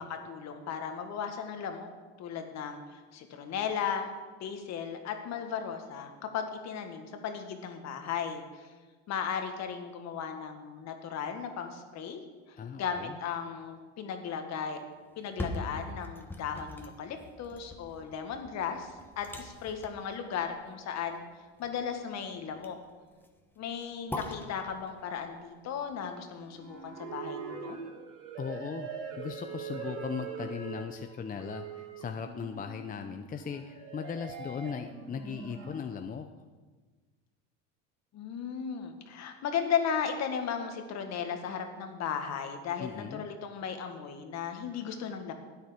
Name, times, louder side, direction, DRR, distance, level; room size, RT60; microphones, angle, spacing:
voice 1, 0.0-1.9 2.2-4.1 4.4-8.7 9.1-12.2 12.5-14.8 15.2-21.2 21.6-22.8 23.6-27.8 38.1-45.3, left 7 dB, 50° left, 6 dB, 1.8 m, -36 dB
voice 2, 12.6-13.2 28.4-28.9 29.2-36.3 42.8-43.3, left 6 dB, 25° left, 6 dB, 0.7 m, -38 dB
sound 1, 15.1-27.1 27.6-27.7, left 1 dB, 5° left, 1.4 m, -44 dB
sound 2, 26.4-35.8, right 6 dB, 60° right, 4.1 m, -42 dB
13.0 x 9.2 x 5.1 m, 1.4 s
supercardioid pair, 95°, 33 cm